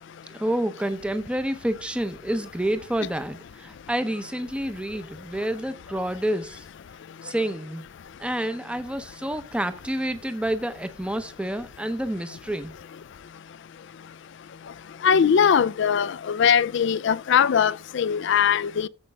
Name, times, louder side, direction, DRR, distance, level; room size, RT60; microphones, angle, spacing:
voice 1, 0.3-6.7 7.2-7.8 8.2-12.7, right 1 dB, 5° right, 0.6 m, -29 dB
voice 2, 15.0-18.9, left 7 dB, 55° left, 0.4 m, -21 dB
15.0 x 5.1 x 3.4 m
head